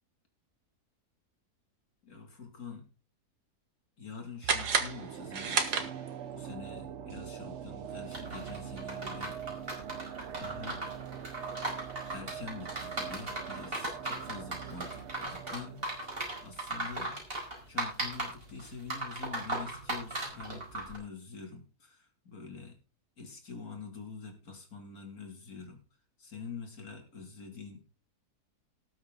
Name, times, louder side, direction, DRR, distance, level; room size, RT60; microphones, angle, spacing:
voice 1, 2.0-2.9 4.0-5.9 6.3-9.7 10.3-10.9 12.1-15.8 16.2-17.2 17.7-22.8 23.2-25.8 26.2-27.8, left 5 dB, 65° left, 3 dB, 3.2 m, -46 dB
sound 1, 4.4-17.5 17.8-17.9, right 9 dB, 55° right, 0.9 m, -43 dB
sound 2, 4.4-6.4, right 5 dB, 85° right, 2.1 m, -31 dB
sound 3, 8.1-21.0, right 2 dB, 35° right, 5.2 m, -37 dB
18.5 x 7.8 x 3.8 m, 0.32 s
omnidirectional pair, 1.7 m